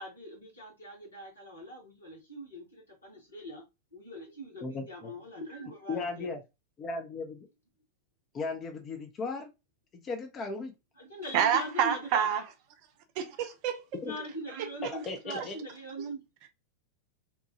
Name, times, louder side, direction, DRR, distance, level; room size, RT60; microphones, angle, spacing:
voice 1, 0.0-3.6 3.9-6.3 11.0-12.3 14.0-16.2, equal, 75° left, 1.5 m, -42 dB
voice 2, 4.6-5.1 5.9-6.4 6.8-7.5 8.3-9.5 9.9-10.7 14.0-14.1 14.9-15.6, left 3 dB, 30° left, 0.6 m, -36 dB
voice 3, 11.3-12.4 13.2-13.8 14.6-14.7, right 9 dB, 45° right, 0.5 m, -27 dB
2.9 x 2.2 x 2.7 m
figure-of-eight pair, 90°, 0 cm